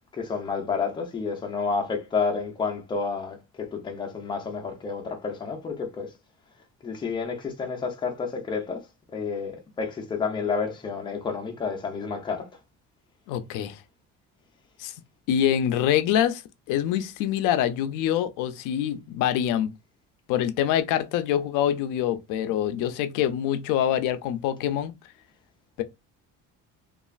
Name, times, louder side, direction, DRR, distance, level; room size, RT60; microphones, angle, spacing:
voice 1, 0.1-6.1 6.8-12.5, left 5 dB, 15° left, 0.5 m, -30 dB
voice 2, 13.3-13.8 14.8-14.9 15.3-16.4 16.7-19.7 20.3-24.9 25.8-25.9, left 10 dB, 85° left, 0.5 m, -25 dB
3.1 x 2.4 x 2.4 m
cardioid pair, 170°, 31 cm